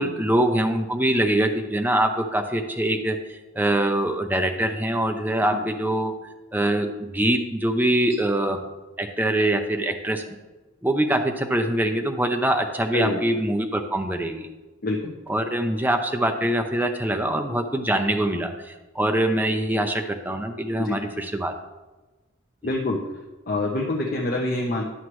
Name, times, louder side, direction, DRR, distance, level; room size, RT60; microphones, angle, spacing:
voice 1, 0.0-3.2 3.6-6.1 6.5-8.6 9.0-10.4 10.8-14.5 15.3-21.5, right 1 dB, 10° right, 5 dB, 0.6 m, -24 dB
voice 2, 5.5-5.9 12.9-13.2 14.8-15.1 20.8-21.0 22.6-23.0 23.5-24.8, left 2 dB, 50° left, -2 dB, 0.9 m, -26 dB
11.5 x 7.2 x 3.1 m, 1.2 s
head